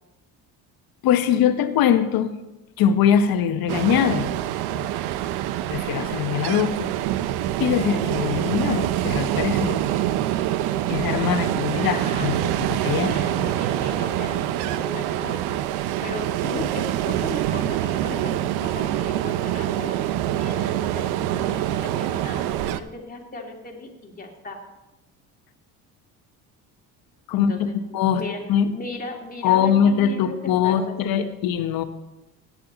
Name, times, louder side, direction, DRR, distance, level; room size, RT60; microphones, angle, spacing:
voice 1, 1.0-2.3 2.8-4.3 4.7-4.8 5.7-6.9 7.6-9.8 10.9-13.5 27.3-28.2 28.5-28.7 29.4-31.8, left 8 dB, 65° left, 9 dB, 1.1 m, -22 dB
Ocean, 3.7-22.8, right 12 dB, 80° right, 0.7 m, -25 dB
voice 2, 11.8-12.4 12.8-18.3 18.6-20.0 20.4-24.6 27.3-27.8 28.1-28.4 28.7-31.3, left 2 dB, 25° left, 1 dB, 2.4 m, -37 dB
14.5 x 9.8 x 4.0 m, 1.0 s
supercardioid pair, 95°, 38 cm